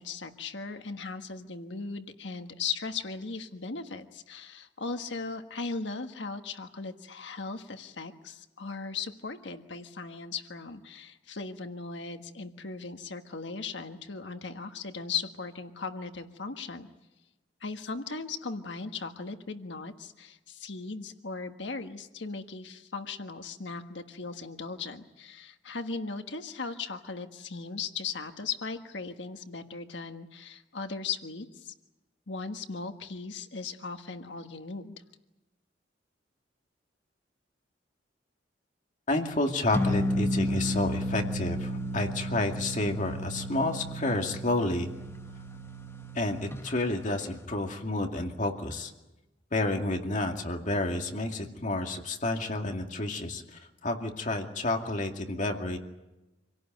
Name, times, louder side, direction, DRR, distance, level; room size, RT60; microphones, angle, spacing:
voice 1, 0.0-16.9 17.6-31.7 32.3-35.0, left 4 dB, 80° left, 7 dB, 1.5 m, -38 dB
voice 2, 39.1-44.9 46.1-48.9 49.5-55.8, left 2 dB, 45° left, 3 dB, 2.3 m, -30 dB
sound 1, 39.7-46.6, equal, 15° left, 1.5 m, -33 dB
26.5 x 17.5 x 9.3 m, 1.0 s
head